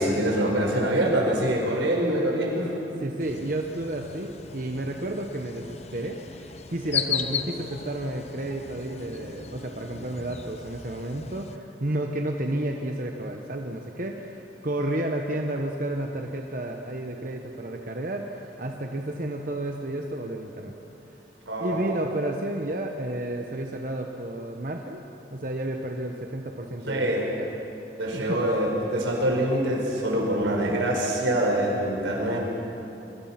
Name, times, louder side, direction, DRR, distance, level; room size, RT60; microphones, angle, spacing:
voice 1, 0.0-2.7 21.5-22.0 26.9-27.2 28.0-32.4, right 1 dB, 85° right, -1 dB, 5.2 m, -25 dB
voice 2, 3.0-6.2 6.7-20.7 21.6-25.0 25.3-27.1 27.4-27.5 28.1-28.4, right 1 dB, 45° right, 2 dB, 1.1 m, -31 dB
sound 1, 3.2-11.6, left 7 dB, 35° left, 0.8 m, -36 dB
25.5 x 23.5 x 6.0 m, 2.9 s
head